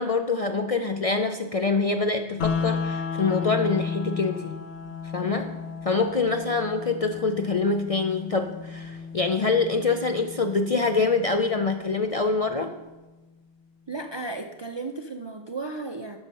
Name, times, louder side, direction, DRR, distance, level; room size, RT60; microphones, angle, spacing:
voice 1, 0.0-4.6 5.1-5.5 5.8-12.7, left 4 dB, 50° left, 6 dB, 0.4 m, -25 dB
sound 1, 2.4-12.4, left 5 dB, 70° left, 1.0 m, -34 dB
voice 2, 5.2-5.5 13.9-16.2, right 3 dB, 40° right, 5 dB, 0.4 m, -35 dB
11.5 x 6.4 x 5.4 m, 1.1 s
omnidirectional pair, 1.1 m